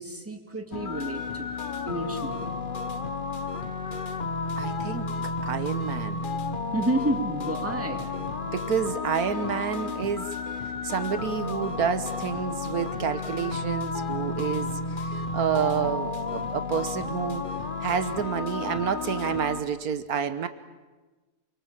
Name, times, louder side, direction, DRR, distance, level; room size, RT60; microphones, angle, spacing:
voice 1, 0.0-1.6 1.9-2.5 6.7-8.1, right 1 dB, 10° right, 5 dB, 2.2 m, -30 dB
sound 1, 0.7-19.6, left 4 dB, 35° left, 1.1 m, -32 dB
voice 2, 4.5-6.3 8.2-10.3 10.8-14.7 15.0-17.4 17.8-20.5, right 7 dB, 75° right, 11 dB, 1.5 m, -29 dB
28.0 x 24.5 x 7.5 m, 1.2 s
omnidirectional pair, 1.6 m